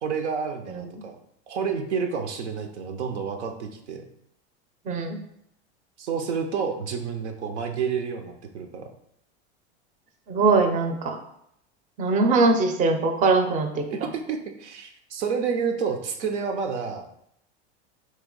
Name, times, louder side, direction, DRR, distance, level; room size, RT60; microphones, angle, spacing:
voice 1, 0.0-1.2 1.5-4.0 6.0-8.9 13.9-17.1, right 6 dB, 85° right, 5 dB, 0.7 m, -29 dB
voice 2, 4.9-5.2 10.3-11.2 12.0-13.8, right 3 dB, 25° right, 5 dB, 0.5 m, -21 dB
3.2 x 2.8 x 3.7 m, 0.73 s
hypercardioid pair, 110°, 34 cm